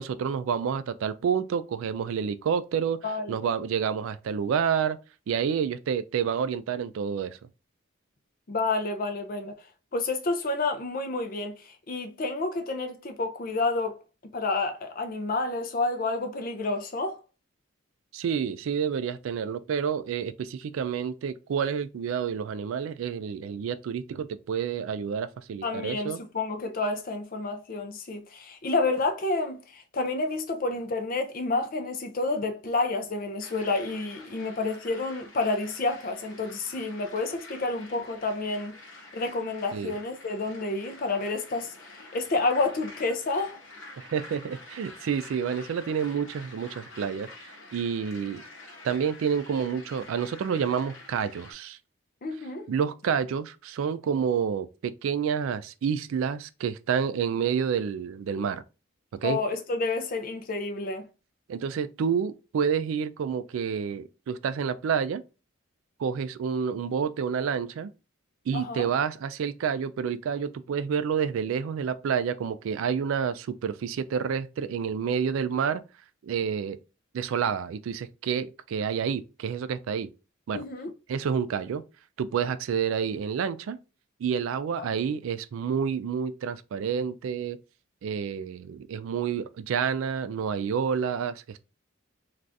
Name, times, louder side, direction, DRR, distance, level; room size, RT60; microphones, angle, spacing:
voice 1, 0.0-3.0 3.3-5.0 5.3-7.4 18.1-26.2 39.7-39.9 44.0-47.3 47.7-48.4 48.8-51.8 52.7-58.6 59.1-59.4 61.5-65.2 66.0-67.9 68.5-75.8 76.2-76.8 77.1-80.1 80.5-80.6 81.1-81.8 82.2-83.8 84.2-87.6 88.0-91.6, right 7 dB, 70° right, 0.3 m, -29 dB
voice 2, 3.0-3.3 8.5-9.5 9.9-14.0 14.3-17.2 25.6-38.8 39.1-43.6 52.2-52.7 59.2-61.1 68.5-68.9 80.5-80.9 84.8-84.9, left 3 dB, 40° left, 0.5 m, -29 dB
sound 1, 33.4-51.5, left 2 dB, 65° left, 0.9 m, -48 dB
3.3 x 2.4 x 2.5 m
head